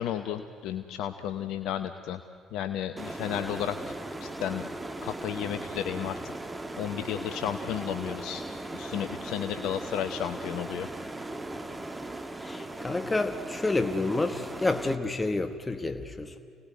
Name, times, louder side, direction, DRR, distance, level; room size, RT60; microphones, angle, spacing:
voice 1, 0.0-2.2 2.5-3.9 4.2-4.7 5.0-6.2 6.8-8.4 8.7-10.9, left 10 dB, 70° left, 9 dB, 0.8 m, -33 dB
sound 1, 3.0-15.0, right 2 dB, 20° right, 2.0 m, -38 dB
voice 2, 12.4-16.4, left 2 dB, 20° left, 8 dB, 1.2 m, -29 dB
27.5 x 18.5 x 9.3 m, 2.4 s
hypercardioid pair, 50°, 0 cm